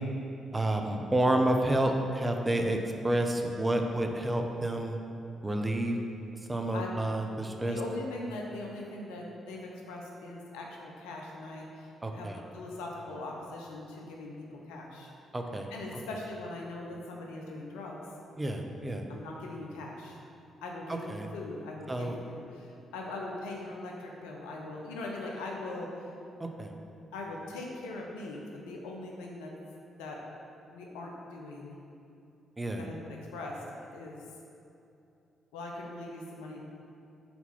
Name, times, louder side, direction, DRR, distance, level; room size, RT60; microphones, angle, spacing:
voice 1, 0.5-2.8 3.0-5.0 5.4-6.0 6.5-7.8 12.0-12.4 15.3-15.7 18.4-19.0 20.9-21.3 21.9-22.1 26.4-26.7 32.6-32.8, right 1 dB, 20° right, 4 dB, 0.7 m, -29 dB
voice 2, 7.7-15.1 15.7-18.0 19.1-20.2 20.6-26.1 27.1-29.5 30.0-30.2 30.7-31.8 32.8-33.6 33.9-34.2 35.5-36.6, left 2 dB, 75° left, -1 dB, 0.7 m, -41 dB
4.4 x 4.1 x 5.6 m, 2.7 s
hypercardioid pair, 40°, 0 cm